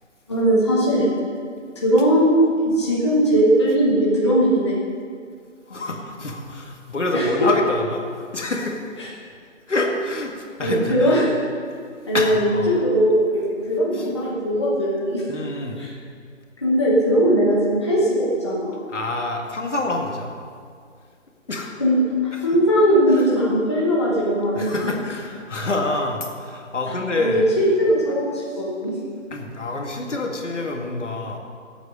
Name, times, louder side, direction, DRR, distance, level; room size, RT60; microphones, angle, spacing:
voice 1, 0.3-1.1 1.8-4.8 5.7-5.8 7.1-7.5 9.0-9.1 10.6-11.3 12.1-15.2 15.8-15.9 16.6-18.8 21.8-24.9 27.2-28.9, equal, 20° left, -6 dB, 1.1 m, -19 dB
voice 2, 5.7-8.0 8.3-8.8 9.7-10.3 10.6-11.2 12.1-12.7 13.9-14.1 15.3-15.8 18.9-20.3 21.5-21.7 22.3-22.5 23.1-23.3 24.5-27.5 29.3-31.4, left 2 dB, 65° left, 2 dB, 1.9 m, -26 dB
13.0 x 8.2 x 5.4 m, 2.2 s
figure-of-eight pair, 170°, 39 cm